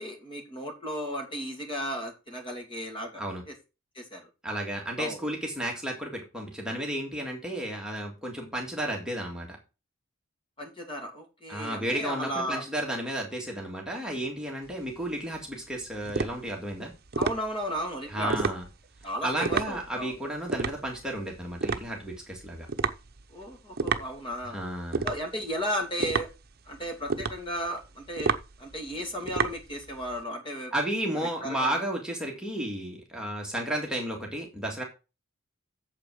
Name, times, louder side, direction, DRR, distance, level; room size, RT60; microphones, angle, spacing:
voice 1, 0.0-3.2 4.0-4.2 5.0-5.2 10.6-12.6 17.1-18.3 19.0-20.1 23.3-24.6 25.0-26.3 26.7-28.3 28.6-30.7 31.2-31.8, equal, 25° left, 3 dB, 2.6 m, -34 dB
voice 2, 4.4-9.6 11.5-16.9 18.1-18.6 19.2-22.7 24.4-25.1 30.7-34.8, right 1 dB, 5° right, -1 dB, 1.9 m, -33 dB
sound 1, 14.6-30.2, right 4 dB, 50° right, 0.8 m, -32 dB
8.6 x 7.3 x 4.8 m, 0.29 s
head